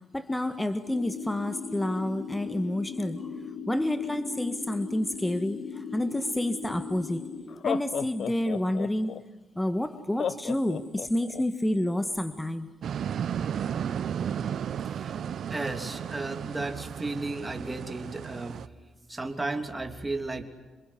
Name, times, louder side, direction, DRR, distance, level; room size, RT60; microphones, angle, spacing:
voice 1, 0.1-3.2 3.7-5.6 5.9-7.2 7.6-9.1 9.6-12.7, left 1 dB, 10° left, 10 dB, 1.5 m, -29 dB
sound 1, 0.9-7.4, left 6 dB, 80° left, 3.6 m, -39 dB
Laughter, 6.7-6.8 7.5-9.2 10.2-11.4, left 8 dB, 60° left, 0.9 m, -32 dB
sound 2, 12.8-18.7, right 8 dB, 60° right, 0.8 m, -34 dB
voice 2, 15.5-18.6 19.1-20.4, right 2 dB, 15° right, 6 dB, 3.0 m, -34 dB
27.5 x 21.5 x 9.9 m, 1.2 s
cardioid pair, 90°, 0 cm